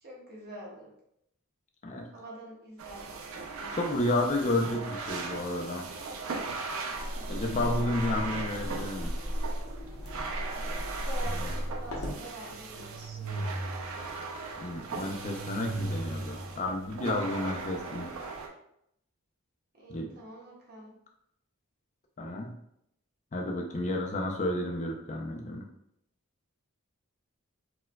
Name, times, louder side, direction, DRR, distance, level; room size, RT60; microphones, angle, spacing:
voice 1, 0.0-0.9 2.1-4.8 7.1-7.5 11.0-13.2 19.7-20.9 24.3-24.4, right 1 dB, 45° right, -5 dB, 1.0 m, -46 dB
sound 1, 2.8-18.5, right 4 dB, 70° right, 0.5 m, -39 dB
voice 2, 3.7-5.9 6.6-6.8 7.3-9.1 11.4-11.5 14.6-18.1 19.9-20.1 22.2-22.5 23.3-25.7, left 1 dB, 30° left, 1 dB, 0.4 m, -31 dB
sound 2, 6.9-12.2, equal, 90° left, 0.9 m, -35 dB
sound 3, 11.2-12.1 12.6-14.2 14.7-16.7, right 2 dB, 85° right, 0.8 m, -38 dB
4.4 x 2.2 x 2.2 m, 0.77 s
head